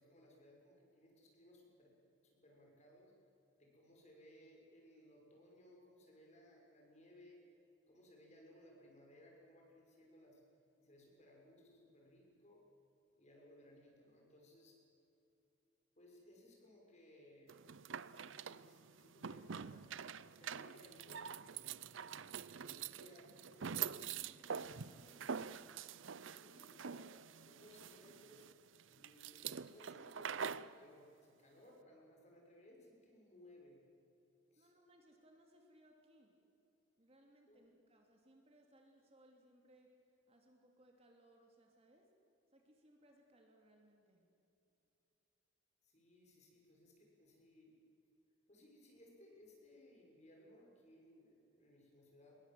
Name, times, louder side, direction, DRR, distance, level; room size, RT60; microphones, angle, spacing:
voice 1, 0.0-1.9 2.2-3.1 3.6-7.4 7.9-10.4 10.8-12.6 13.2-14.8 16.0-21.7 22.5-25.6 26.1-27.1 27.4-28.5 28.9-29.4 29.7-33.8 34.5-34.7 37.5-37.7 45.8-47.9 48.5-52.4, left 1 dB, 35° left, -1 dB, 6.4 m, -63 dB
sound 1, 17.5-30.7, right 7 dB, 70° right, 0.6 m, -46 dB
voice 2, 34.5-36.4 37.0-39.9 40.3-42.1 42.5-44.2, right 1 dB, 30° right, 1 dB, 3.0 m, -67 dB
27.0 x 22.0 x 7.8 m, 2.9 s
head